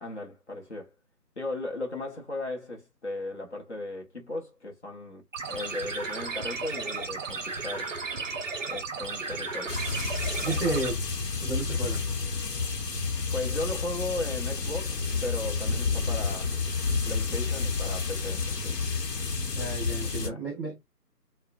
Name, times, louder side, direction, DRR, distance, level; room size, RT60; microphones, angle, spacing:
voice 1, 0.0-0.9 1.4-5.2 5.5-8.0 8.7-9.8 10.4-10.8 13.3-16.5 17.0-18.7 19.6-19.7 20.0-20.4, left 2 dB, 45° left, 0.6 m, -36 dB
sound 1, 5.3-10.9, right 4 dB, 55° right, 0.6 m, -34 dB
sound 2, 9.7-20.3, left 4 dB, 80° left, 0.8 m, -30 dB
voice 2, 10.4-11.0 11.4-12.0 19.5-20.8, right 3 dB, ahead, 0.7 m, -32 dB
2.3 x 2.0 x 2.6 m
figure-of-eight pair, 170°, 48 cm